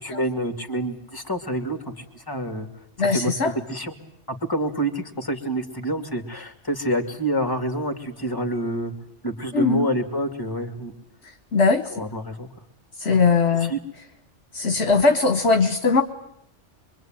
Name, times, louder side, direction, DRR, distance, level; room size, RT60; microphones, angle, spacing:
voice 1, 0.0-2.7 3.0-3.9 4.3-8.9 9.2-10.9 11.9-12.5 13.1-13.2 13.6-13.8, right 1 dB, 20° left, 6 dB, 2.6 m, -27 dB
voice 2, 3.0-3.5 9.5-9.9 11.5-11.9 13.0-13.7 14.5-16.0, left 4 dB, 65° left, 7 dB, 1.5 m, -20 dB
25.5 x 24.0 x 9.1 m, 0.73 s
omnidirectional pair, 1.2 m